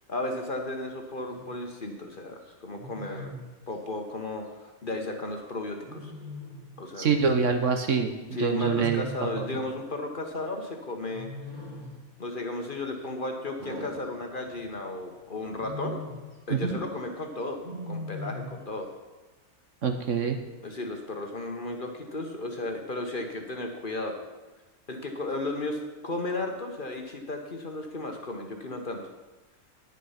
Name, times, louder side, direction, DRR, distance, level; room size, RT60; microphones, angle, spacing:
voice 1, 0.1-6.1 6.8-7.1 8.3-11.3 12.2-16.0 16.5-17.6 17.9-18.9 20.6-24.2 24.9-29.0, left 2 dB, 35° left, 3 dB, 1.3 m, -34 dB
Wild animals, 1.2-1.6 2.8-3.5 5.9-6.8 8.5-9.6 11.1-12.1 13.6-14.7 15.4-16.3 17.6-18.6, left 1 dB, 30° right, 1.9 m, -40 dB
voice 2, 7.0-9.5 16.5-16.8 19.8-20.4, right 6 dB, 60° right, 6 dB, 1.2 m, -26 dB
9.9 x 9.4 x 5.7 m, 1.2 s
omnidirectional pair, 1.6 m